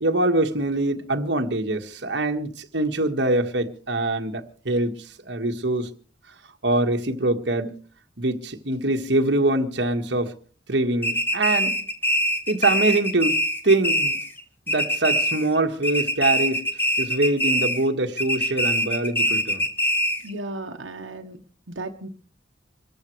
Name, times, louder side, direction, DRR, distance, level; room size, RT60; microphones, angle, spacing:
voice 1, 0.0-5.9 6.6-7.8 8.2-10.3 10.7-11.7 12.5-13.4 13.6-14.2 14.7-16.6 17.0-19.6, right 2 dB, 65° right, 1.6 m, -24 dB
sound 1, 11.0-14.4 14.7-15.6 15.8-17.9 18.2-20.3, equal, 10° left, 1.7 m, -23 dB
voice 2, 20.2-22.1, right 2 dB, 80° right, 1.1 m, -35 dB
27.0 x 14.0 x 3.3 m
head